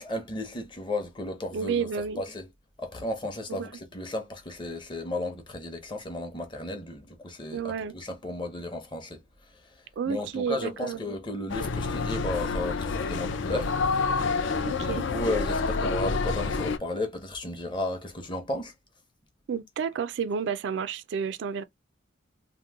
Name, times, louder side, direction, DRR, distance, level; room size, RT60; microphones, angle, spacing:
voice 1, 0.0-1.9 2.2-2.5 2.8-9.2 9.5-13.7 14.8-18.7, left 1 dB, 25° left, 0.7 m, -34 dB
voice 2, 1.5-2.2 3.5-3.7 7.5-7.9 10.0-11.0 14.6-15.0 19.5-21.6, right 6 dB, 60° right, 0.3 m, -31 dB
sound 1, 11.5-16.8, left 4 dB, 65° left, 0.4 m, -28 dB
2.9 x 2.1 x 3.4 m
head